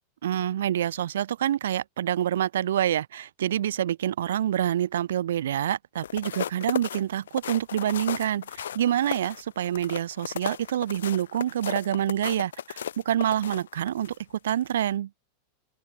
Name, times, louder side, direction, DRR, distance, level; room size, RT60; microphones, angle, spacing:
voice 1, 0.2-14.1 14.4-15.1, right 11 dB, 60° right, 0.9 m, -27 dB
sound 1, 6.0-14.2 14.6-14.8, left 9 dB, 65° left, 2.4 m, -35 dB
figure-of-eight pair, 90°, 0 cm